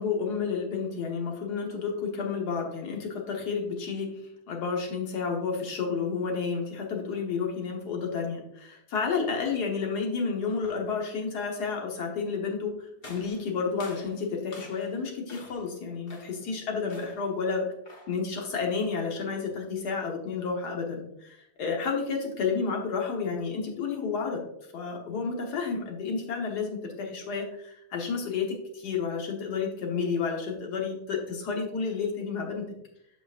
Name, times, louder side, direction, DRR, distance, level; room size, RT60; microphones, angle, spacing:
voice 1, 0.0-4.2 4.5-17.7 18.1-24.5 24.7-32.7, left 5 dB, 75° left, 0 dB, 1.7 m, -31 dB
sound 1, 13.0-15.0 15.3-15.7 16.1-16.5 16.9-17.3 17.8-18.2, left 2 dB, 40° left, 1.1 m, -48 dB
8.0 x 5.8 x 2.5 m, 0.79 s
omnidirectional pair, 1.8 m